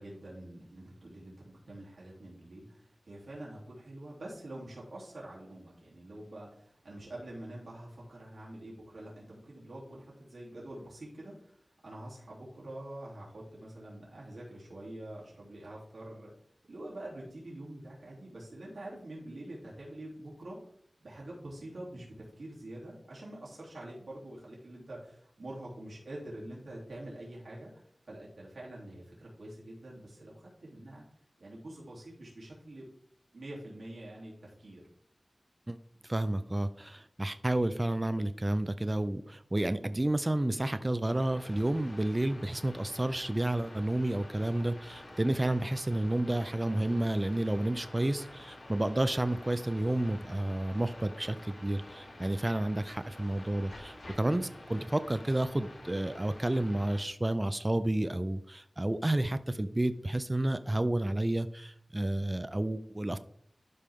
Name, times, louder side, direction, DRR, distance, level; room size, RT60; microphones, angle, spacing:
voice 1, 0.0-16.3 16.7-20.6 21.0-27.7 28.1-31.0 31.4-32.9 33.3-34.8, right 1 dB, 80° right, -5 dB, 3.0 m, -46 dB
voice 2, 36.0-63.2, right 1 dB, 30° right, 12 dB, 0.5 m, -31 dB
sound 1, 41.1-57.0, left 1 dB, 60° left, 2.5 m, -49 dB
12.0 x 5.0 x 3.6 m, 0.66 s
wide cardioid pair, 45°, 0 cm